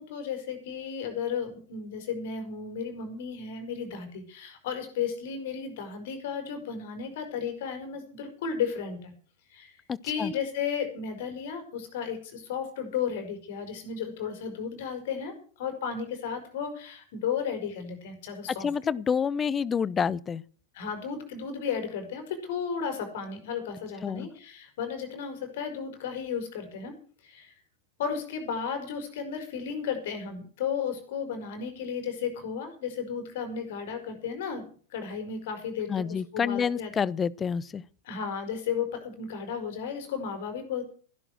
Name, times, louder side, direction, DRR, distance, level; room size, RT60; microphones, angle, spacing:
voice 1, 0.0-9.1 9.5-9.7 10.0-18.7 20.7-26.9 27.2-27.5 28.0-34.6 34.9-36.9 38.0-40.8, left 7 dB, 55° left, 5.2 m, -34 dB
voice 2, 9.9-10.3 18.6-20.4 24.0-24.3 35.9-37.8, left 6 dB, 20° left, 0.6 m, -28 dB
16.0 x 11.0 x 6.3 m
figure-of-eight pair, 90°, 0 cm